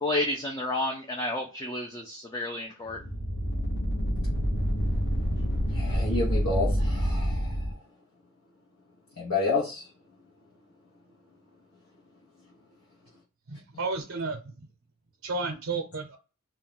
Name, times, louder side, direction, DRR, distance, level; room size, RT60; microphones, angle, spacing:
voice 1, 0.0-3.0, left 1 dB, 20° left, 1 dB, 0.4 m, -31 dB
sound 1, 2.9-7.7, equal, 60° left, 0.8 m, -27 dB
voice 2, 5.7-7.7 9.2-9.9, left 3 dB, 85° left, -5 dB, 0.8 m, -30 dB
voice 3, 13.5-14.7 15.2-16.2, right 3 dB, 70° right, 5 dB, 0.6 m, -32 dB
2.3 x 2.1 x 3.8 m, 0.34 s
head